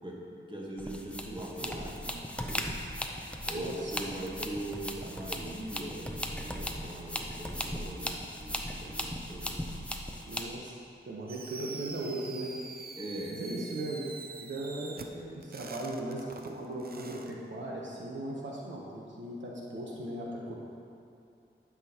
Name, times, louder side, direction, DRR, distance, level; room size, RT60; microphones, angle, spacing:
voice 1, 0.0-2.8 3.5-9.5 13.0-13.4 15.1-15.4, right 1 dB, 25° right, -3 dB, 1.4 m, -41 dB
sound 1, 0.8-10.6, equal, 5° left, 0.6 m, -38 dB
voice 2, 3.5-3.9 10.3-10.7 11.1-12.5 13.3-20.6, right 1 dB, 65° right, -4 dB, 1.1 m, -38 dB
Fireworks, 11.3-17.3, right 4 dB, 50° right, 0.5 m, -45 dB
11.5 x 6.1 x 3.0 m, 2.5 s
wide cardioid pair, 65°, 20 cm